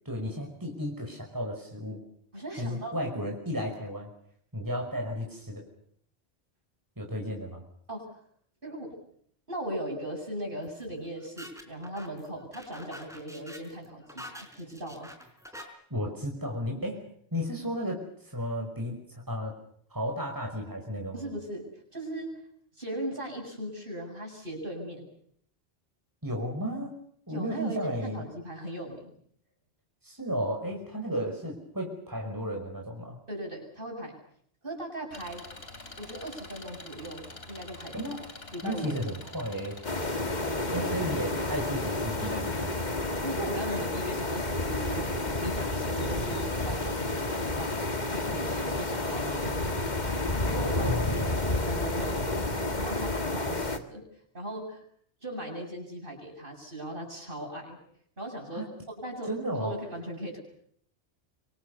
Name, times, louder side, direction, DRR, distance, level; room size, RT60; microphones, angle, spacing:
voice 1, 0.1-2.0 2.6-4.1 4.5-5.6 7.0-7.6 15.5-17.0 17.3-19.5 19.9-21.2 26.2-27.0 27.3-28.2 30.0-33.2 37.9-38.2 38.6-39.8 40.7-42.8 50.8-51.5 58.5-58.6 59.3-59.8, equal, 20° right, 1 dB, 5.4 m, -33 dB
voice 2, 2.3-3.0 7.9-8.1 8.6-8.9 9.5-15.1 21.1-22.3 22.8-25.1 27.3-29.1 33.3-34.1 34.6-35.4 36.0-38.2 38.5-38.9 40.7-41.0 43.2-47.7 48.1-54.0 54.3-54.8 55.2-57.8 58.2-60.4, right 1 dB, 55° right, 2 dB, 8.2 m, -38 dB
sound 1, 10.6-15.6, equal, 5° right, 4.4 m, -46 dB
Engine, 35.1-40.1, left 2 dB, 65° left, 3.6 m, -46 dB
sound 2, 39.8-53.8, left 2 dB, 40° left, 2.0 m, -30 dB
26.5 x 25.0 x 6.9 m, 0.65 s
omnidirectional pair, 1.1 m